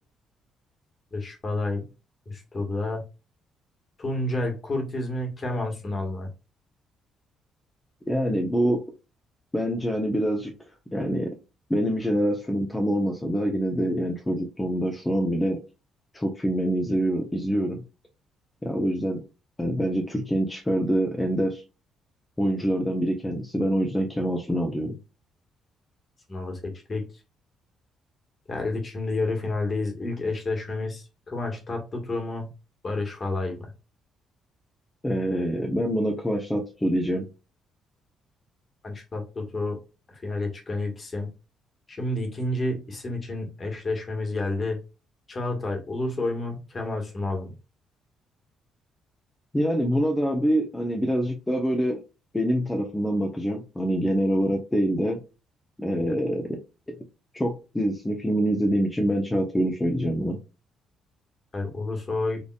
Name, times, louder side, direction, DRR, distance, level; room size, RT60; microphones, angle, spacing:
voice 1, 1.1-1.8 2.2-3.0 4.0-6.3 26.3-27.0 28.5-32.5 32.8-33.7 38.8-39.8 40.1-41.3 41.9-44.8 45.3-47.5 55.9-56.2 61.5-62.4, left 2 dB, 40° left, 2 dB, 1.7 m, -30 dB
voice 2, 8.1-8.8 9.5-10.5 10.9-11.3 11.7-15.6 16.1-17.8 18.6-19.2 19.6-21.6 22.4-24.9 35.0-37.3 49.5-52.0 52.3-55.2 55.8-56.6 57.3-60.4, equal, 15° left, 2 dB, 0.9 m, -25 dB
4.1 x 3.4 x 2.4 m, 0.29 s
supercardioid pair, 55°, 0 cm